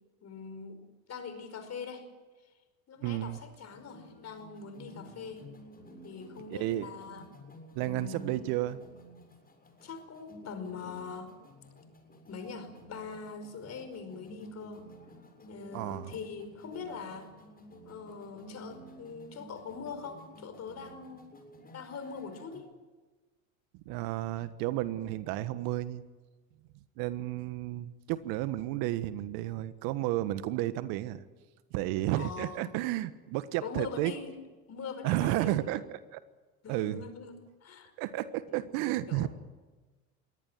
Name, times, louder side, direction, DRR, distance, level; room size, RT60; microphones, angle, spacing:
voice 1, 0.2-0.8 1.1-2.1 2.9-5.5 6.0-7.3 7.8-8.5 9.8-11.3 12.3-14.9 15.5-17.3 17.8-21.3 21.7-22.7 32.2-32.7 33.6-34.4 34.7-35.8 36.6-37.3 37.6-37.9 38.5-38.6 39.1-39.3, left 5 dB, 40° left, 9 dB, 5.1 m, -42 dB
voice 2, 3.0-3.4 6.5-6.9 7.7-8.8 15.7-16.1 23.8-26.0 27.0-31.2 31.7-34.1 35.0-36.2 36.7-37.0 38.0-39.3, right 15 dB, 60° right, 13 dB, 1.4 m, -32 dB
sound 1, 3.7-22.6, equal, 20° left, 7.2 m, -52 dB
22.5 x 17.5 x 9.1 m, 1.3 s
hypercardioid pair, 85°, 42 cm